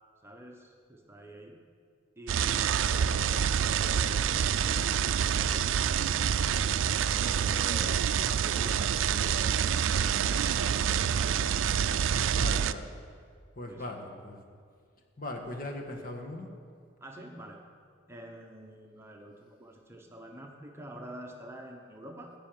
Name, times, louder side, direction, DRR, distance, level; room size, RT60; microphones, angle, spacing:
voice 1, 0.2-1.6 2.2-6.2 7.1-8.1 8.4-11.6 13.7-14.0 17.0-17.6 18.1-22.3, right 1 dB, 15° right, 1 dB, 1.0 m, -47 dB
sound 1, 2.3-12.7, right 8 dB, 90° right, 0.4 m, -27 dB
voice 2, 12.3-12.9 13.5-14.4 15.2-16.5, left 1 dB, 45° left, 2 dB, 1.4 m, -39 dB
15.5 x 5.6 x 9.1 m, 2.1 s
head